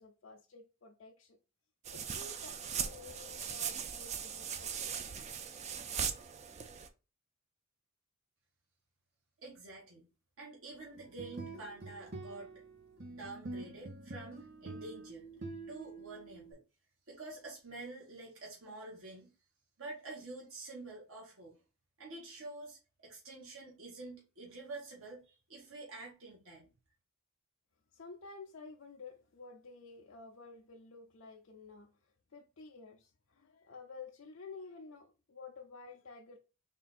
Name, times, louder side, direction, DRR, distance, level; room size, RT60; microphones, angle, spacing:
voice 1, 0.0-1.4 1.9-5.0 27.9-31.9 32.3-36.4, left 4 dB, 65° left, 0.5 m, -52 dB
sound 1, 1.8-6.9, right 7 dB, 30° right, 0.3 m, -39 dB
voice 2, 9.4-10.0 10.4-12.5 13.1-15.3 15.7-16.6 17.1-19.3 19.8-21.6 22.0-26.7, right 2 dB, 70° right, 1.2 m, -48 dB
sound 2, 11.0-16.5, right 2 dB, 50° right, 1.0 m, -47 dB
3.7 x 2.5 x 4.1 m
head